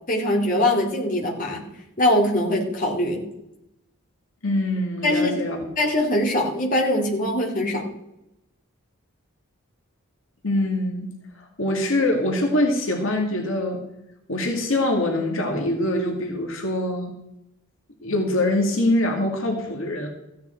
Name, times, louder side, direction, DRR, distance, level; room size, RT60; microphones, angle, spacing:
voice 1, 0.1-1.6 2.0-3.2 5.0-5.3 5.8-7.8, left 1 dB, 40° left, -1 dB, 2.6 m, -22 dB
voice 2, 4.4-5.6 10.4-11.1 11.4-13.8 14.3-17.1 18.0-20.1, left 1 dB, 65° left, 1 dB, 2.2 m, -24 dB
15.0 x 9.6 x 4.5 m, 0.87 s
head